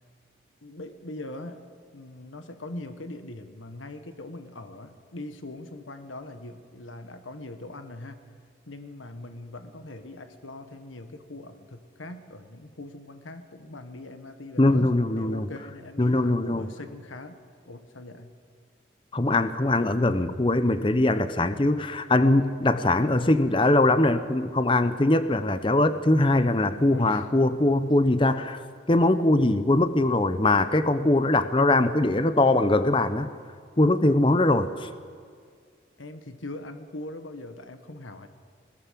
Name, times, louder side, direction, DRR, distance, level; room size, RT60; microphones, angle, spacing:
voice 1, 0.6-1.6 1.9-8.2 8.7-17.4 17.7-18.3 26.9-27.3 36.0-38.3, left 2 dB, 90° left, 8 dB, 1.5 m, -41 dB
voice 2, 14.6-15.5 16.0-16.7 19.1-28.6 28.9-33.3 33.8-34.9, left 2 dB, 25° left, 11 dB, 0.7 m, -22 dB
21.0 x 20.0 x 7.6 m, 2.1 s
head